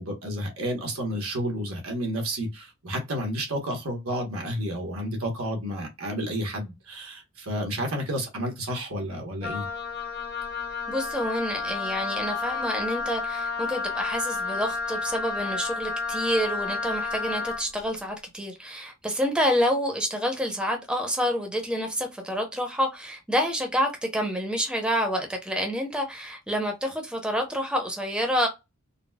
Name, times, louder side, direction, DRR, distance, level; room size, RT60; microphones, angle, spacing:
voice 1, 0.0-9.7, equal, 90° right, 1.2 m, -31 dB
Wind instrument woodwind instrument, 9.4-17.7, left 4 dB, 55° left, 1.0 m, -31 dB
voice 2, 10.9-28.5, equal, 5° right, 0.7 m, -28 dB
4.0 x 2.1 x 2.2 m
head